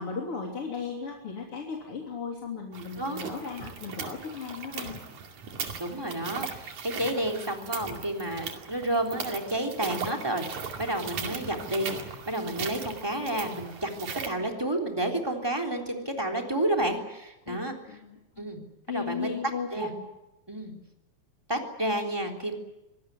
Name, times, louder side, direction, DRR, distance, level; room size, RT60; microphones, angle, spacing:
voice 1, 0.0-5.0 17.5-17.6 17.9-18.5 18.9-20.1, left 5 dB, 50° left, -1 dB, 4.1 m, -36 dB
sound 1, 2.7-14.3, right 6 dB, 85° right, 3.9 m, -38 dB
voice 2, 5.8-11.9 12.3-13.9 14.3-17.7 18.4-18.6 18.9-19.3 19.7-19.9 20.5-20.7 21.5-22.6, right 1 dB, 10° right, 2 dB, 3.4 m, -30 dB
25.5 x 18.5 x 9.8 m, 0.95 s
omnidirectional pair, 3.3 m